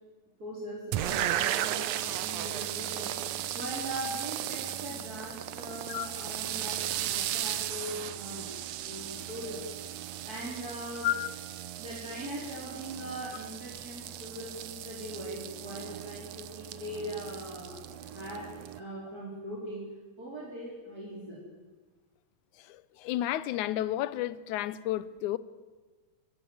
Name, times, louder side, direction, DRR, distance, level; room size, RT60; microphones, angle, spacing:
voice 1, 0.4-3.1 3.5-8.5 8.8-9.6 10.2-11.1 11.8-18.4 18.8-19.8 20.2-21.3, right 1 dB, 30° right, 4.7 m, -40 dB
sound 1, 0.9-18.8, right 12 dB, 70° right, 1.9 m, -36 dB
voice 2, 5.9-6.2 11.0-11.3 23.0-25.4, left 13 dB, 80° left, 2.2 m, -31 dB
23.5 x 16.5 x 7.9 m
omnidirectional pair, 3.4 m